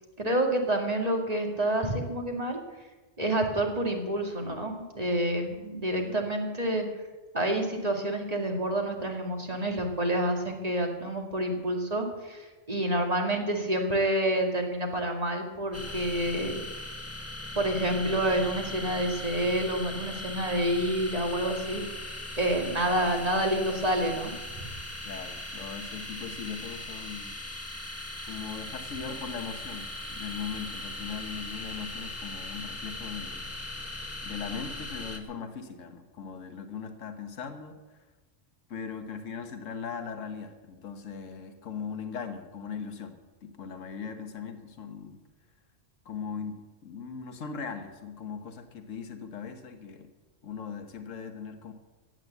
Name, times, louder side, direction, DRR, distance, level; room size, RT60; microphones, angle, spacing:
voice 1, 0.2-2.6 3.2-6.9 7.3-16.6 17.6-21.8 22.4-24.3 24.6-24.7, right 1 dB, 30° right, 2 dB, 2.3 m, -28 dB
sound 1, 15.7-35.2, left 1 dB, 10° left, 1.3 m, -39 dB
voice 2, 25.0-27.3 28.2-33.6 34.2-38.0 38.7-45.2 46.0-50.1 50.4-51.7, left 6 dB, 85° left, 7 dB, 1.6 m, -39 dB
15.5 x 9.2 x 8.1 m, 1.2 s
omnidirectional pair, 1.3 m